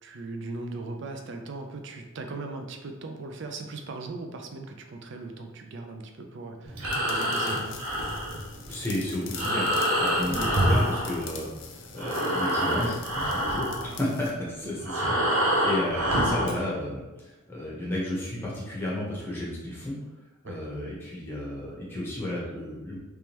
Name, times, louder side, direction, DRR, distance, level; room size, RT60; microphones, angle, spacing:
voice 1, 0.0-7.8 10.1-10.5 14.6-14.8 20.4-20.6, right 3 dB, 55° right, 4 dB, 0.4 m, -38 dB
Breathing, 6.7-11.7 11.9-16.6, equal, 85° right, 0.8 m, -27 dB
sound 1, 6.9-14.3, left 7 dB, 55° left, 0.4 m, -45 dB
voice 2, 8.7-20.0 20.4-23.0, left 1 dB, 10° left, -5 dB, 0.9 m, -33 dB
3.5 x 3.1 x 2.9 m, 1.1 s
head